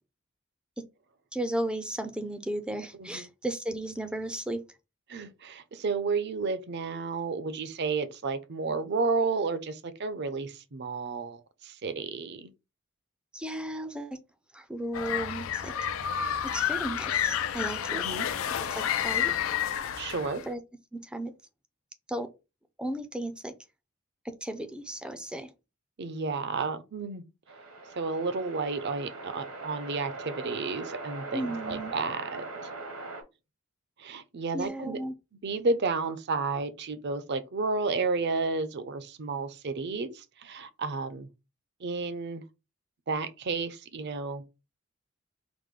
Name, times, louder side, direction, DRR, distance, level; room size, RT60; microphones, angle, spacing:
voice 1, 1.3-4.6 13.3-14.2 14.5-15.7 16.4-18.0 18.7-19.3 20.5-20.6 20.9-21.3 22.1-22.3 22.8-23.5 24.2-25.5 31.3-32.0 34.5-35.1, right 1 dB, 5° right, 0.5 m, -34 dB
voice 2, 5.1-12.5 17.9-18.3 20.0-20.4 26.0-27.2 28.0-32.4 34.0-35.0 35.4-41.3 41.8-42.4 43.1-44.4, right 4 dB, 55° right, 0.6 m, -32 dB
sound 1, 14.9-20.5, left 9 dB, 70° left, 0.4 m, -30 dB
sound 2, 27.5-33.2, right 3 dB, 75° right, 1.1 m, -41 dB
4.9 x 2.1 x 3.6 m
head